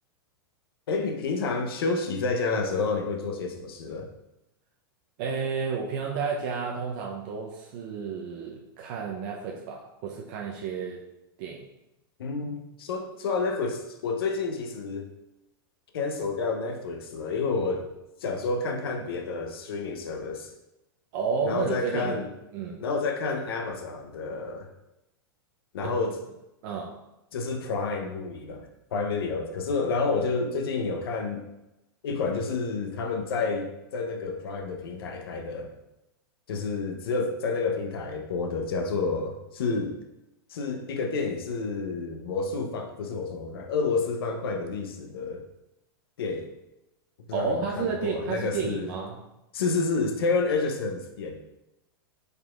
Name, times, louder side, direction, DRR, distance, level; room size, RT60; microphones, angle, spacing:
voice 1, 0.9-4.1 12.2-15.1 15.9-17.9 18.2-20.5 21.4-22.3 22.8-24.7 25.7-26.2 27.3-31.4 32.0-35.7 36.5-39.9 40.5-45.4 46.2-46.5 47.3-48.9 49.5-51.4, left 4 dB, 75° left, 4 dB, 0.7 m, -29 dB
voice 2, 5.2-11.0 11.4-11.7 21.1-22.2 22.5-22.8 25.8-25.9 26.6-27.0 47.3-49.2, right 5 dB, 55° right, 0 dB, 0.6 m, -31 dB
5.2 x 4.2 x 2.4 m, 0.92 s
hypercardioid pair, 115°, 12 cm